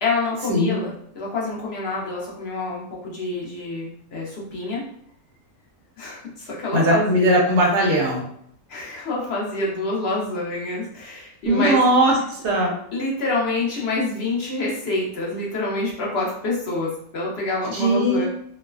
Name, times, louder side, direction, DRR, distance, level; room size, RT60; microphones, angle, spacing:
voice 1, 0.0-4.8 6.0-7.1 8.7-11.8 12.9-18.3, left 2 dB, 55° left, -4 dB, 0.8 m, -27 dB
voice 2, 6.7-8.2 11.4-12.7 17.7-18.3, right 1 dB, 60° right, -2 dB, 1.0 m, -19 dB
3.0 x 2.0 x 2.3 m, 0.67 s
omnidirectional pair, 1.5 m